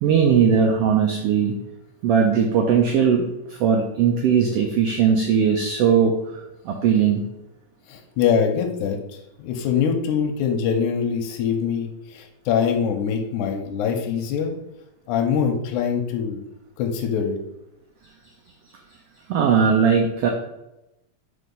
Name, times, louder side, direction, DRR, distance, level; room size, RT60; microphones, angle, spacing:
voice 1, 0.0-1.5 2.0-7.2 19.3-20.3, right 7 dB, 90° right, 2 dB, 1.3 m, -19 dB
voice 2, 7.9-14.5 15.1-16.4 16.8-17.4, left 7 dB, 90° left, 2 dB, 2.1 m, -23 dB
4.6 x 4.1 x 5.3 m, 0.90 s
omnidirectional pair, 3.5 m